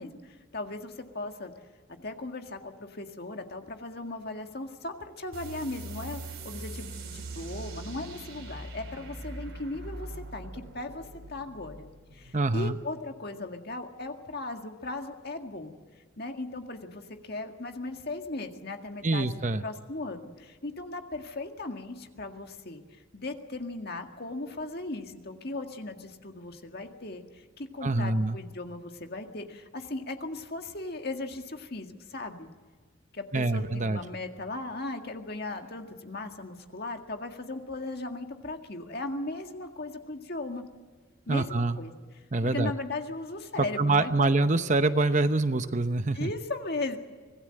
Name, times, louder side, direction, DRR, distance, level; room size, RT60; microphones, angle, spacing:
voice 1, 0.0-1.5 2.0-15.8 16.2-22.8 23.1-32.5 33.1-40.7 41.3-41.9 42.4-44.3 46.1-47.0, left 2 dB, 50° left, 5 dB, 1.9 m, -37 dB
sound 1, 5.3-12.4, right 2 dB, 85° right, 5.3 m, -42 dB
voice 2, 12.3-12.8 19.0-19.6 27.8-28.4 33.3-34.0 41.3-41.8 42.3-42.7 43.8-46.3, right 2 dB, 35° right, 10 dB, 0.8 m, -25 dB
25.5 x 18.0 x 7.8 m, 1.5 s
head